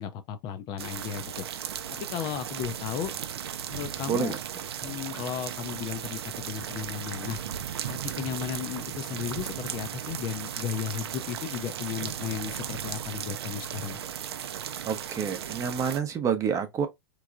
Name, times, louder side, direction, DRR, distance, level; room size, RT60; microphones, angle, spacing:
voice 1, 0.0-1.5 1.9-3.1 3.7-4.4 4.8-7.4 7.9-14.0, left 9 dB, 35° left, 0.5 m, -35 dB
sound 1, 0.8-16.0, right 9 dB, 80° right, 0.5 m, -36 dB
voice 2, 14.8-16.9, right 7 dB, 25° right, 0.7 m, -28 dB
3.5 x 3.1 x 2.4 m
hypercardioid pair, 120°, 13 cm